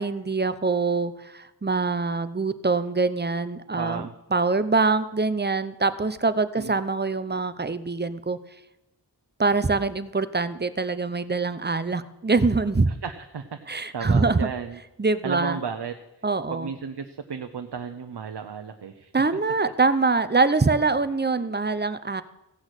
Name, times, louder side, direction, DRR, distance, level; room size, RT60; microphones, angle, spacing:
voice 1, 0.0-8.4 9.4-12.9 13.7-14.5 15.0-15.6 16.2-16.7 19.1-22.2, right 3 dB, 25° right, 13 dB, 0.7 m, -24 dB
voice 2, 3.8-4.1 6.5-6.8 12.9-14.8 15.2-16.0 16.5-19.1, right 6 dB, 75° right, 6 dB, 0.8 m, -34 dB
16.0 x 6.2 x 8.1 m, 0.94 s
wide cardioid pair, 65°, 41 cm